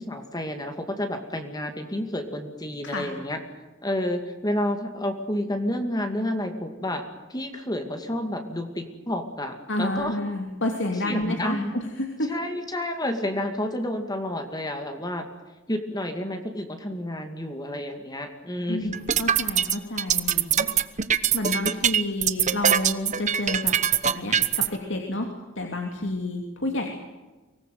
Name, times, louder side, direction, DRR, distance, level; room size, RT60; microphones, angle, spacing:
voice 1, 0.0-3.4 3.8-7.0 7.3-10.1 11.0-11.7 12.3-15.3 15.7-18.9, left 1 dB, 20° left, 5 dB, 2.3 m, -30 dB
voice 2, 9.7-12.3 18.7-20.7 21.3-23.8 24.0-27.0, left 1 dB, 60° left, 3 dB, 2.9 m, -30 dB
sound 1, 18.9-24.7, right 9 dB, 35° right, 1.0 m, -22 dB
24.5 x 19.5 x 9.4 m, 1.2 s
head